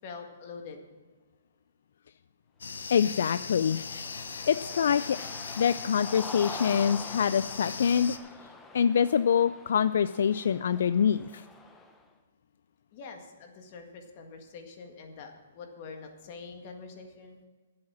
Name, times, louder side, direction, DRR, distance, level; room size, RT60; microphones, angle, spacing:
voice 1, 0.0-0.8 12.9-17.4, left 4 dB, 40° left, 4 dB, 1.8 m, -45 dB
sound 1, 2.6-8.2, left 5 dB, 85° left, 1.0 m, -39 dB
Cheering, 2.8-12.0, left 3 dB, 10° left, 0.8 m, -45 dB
voice 2, 2.9-3.8 4.5-5.2 5.6-8.2 8.7-11.4, left 7 dB, 65° left, 14 dB, 0.3 m, -25 dB
11.5 x 7.7 x 7.4 m, 1.4 s
hypercardioid pair, 155°, 0 cm